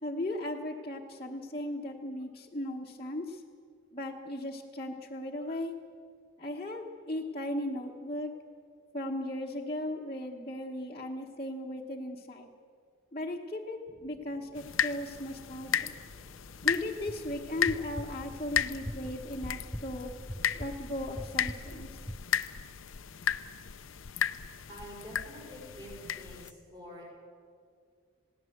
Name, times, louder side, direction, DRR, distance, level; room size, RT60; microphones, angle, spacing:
voice 1, 0.0-3.4 3.9-5.8 6.4-8.3 8.9-12.5 13.1-15.9 16.6-20.1 20.5-22.0, left 1 dB, 30° left, -4 dB, 1.2 m, -37 dB
sound 1, 13.9-22.2, equal, 5° left, 0.5 m, -44 dB
sound 2, 14.6-26.5, left 9 dB, 85° left, 0.7 m, -35 dB
voice 2, 24.7-27.0, equal, 20° right, -3 dB, 6.4 m, -47 dB
21.0 x 17.0 x 7.9 m, 2.2 s
head